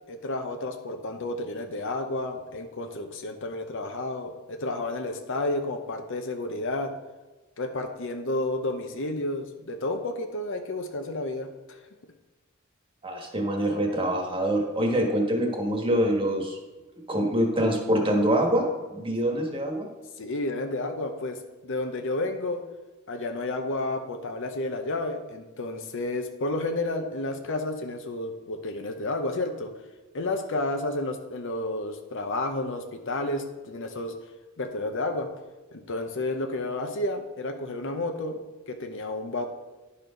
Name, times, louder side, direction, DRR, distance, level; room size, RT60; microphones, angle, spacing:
voice 1, 0.1-6.9 7.6-11.8 20.2-21.4 21.6-22.6 23.1-29.7 30.1-34.1 34.6-35.3 35.7-38.4 38.7-39.4, left 2 dB, 60° left, 6 dB, 0.8 m, -31 dB
voice 2, 13.0-16.6 17.1-18.6 18.9-19.9, right 1 dB, 25° right, 1 dB, 1.5 m, -25 dB
11.0 x 4.3 x 5.2 m, 1.2 s
head